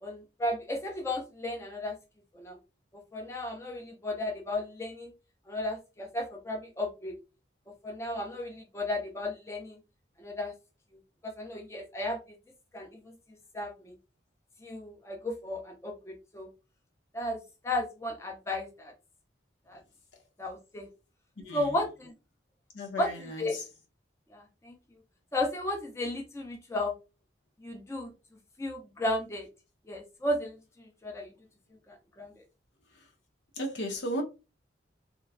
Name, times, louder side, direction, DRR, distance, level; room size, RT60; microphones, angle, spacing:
voice 1, 0.0-2.0 2.3-2.6 3.1-5.1 5.5-7.1 7.8-9.8 10.2-10.5 11.2-12.2 12.7-13.1 13.5-13.9 14.6-16.5 17.1-18.9 19.7-19.8 20.4-20.9 21.5-22.1 23.0-23.1 23.4-23.6 24.3-24.7 25.3-26.9 27.6-28.1 28.6-29.5 29.9-30.5 31.0-31.3 31.9-32.3, left 1 dB, 15° left, 0.4 m, -34 dB
voice 2, 21.4-21.8 22.7-23.7 32.9-33.1 33.6-34.2, equal, 80° left, 0.7 m, -35 dB
2.9 x 2.2 x 2.3 m
head